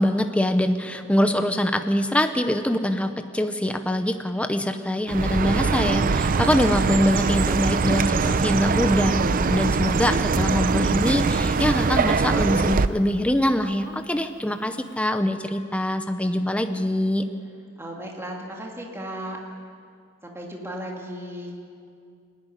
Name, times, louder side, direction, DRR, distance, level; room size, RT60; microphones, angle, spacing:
voice 1, 0.0-17.2, left 1 dB, 5° left, 7 dB, 0.6 m, -24 dB
Chirp tweet, 5.1-12.9, right 4 dB, 45° right, 0.5 m, -22 dB
voice 2, 17.8-19.4 20.2-21.5, equal, 10° right, -1 dB, 2.2 m, -35 dB
25.5 x 10.5 x 9.9 m, 2.3 s
head